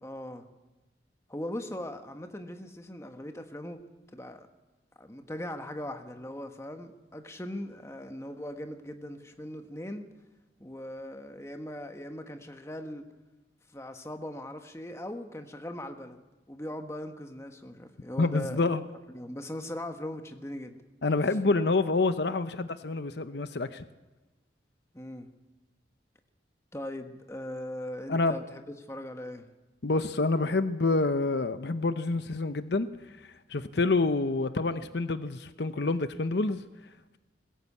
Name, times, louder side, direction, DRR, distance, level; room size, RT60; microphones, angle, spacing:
voice 1, 0.0-0.5 1.3-3.8 4.1-4.5 5.0-10.1 10.6-13.0 13.7-16.2 16.5-18.6 19.1-20.8 24.9-25.3 26.7-29.5, left 1 dB, 15° left, 6 dB, 1.3 m, -39 dB
voice 2, 18.2-18.8 21.0-23.8 28.1-28.4 29.8-36.6, left 3 dB, 65° left, 11 dB, 0.8 m, -27 dB
20.5 x 16.5 x 8.5 m, 1.1 s
head